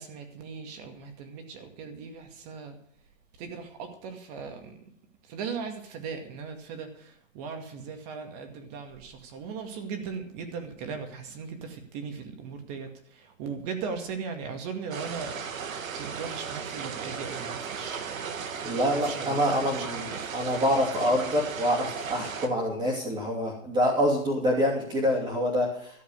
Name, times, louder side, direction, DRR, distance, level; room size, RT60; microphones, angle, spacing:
voice 1, 0.0-2.8 3.4-4.7 5.3-15.4 16.0-18.2 18.5-18.6 18.9-20.3, right 5 dB, 30° right, 6 dB, 2.2 m, -38 dB
sound 1, 14.9-22.5, right 6 dB, 85° right, 1.9 m, -36 dB
voice 2, 18.6-25.9, equal, 10° right, -5 dB, 2.8 m, -26 dB
13.5 x 7.2 x 8.0 m, 0.68 s
hypercardioid pair, 160°, 39 cm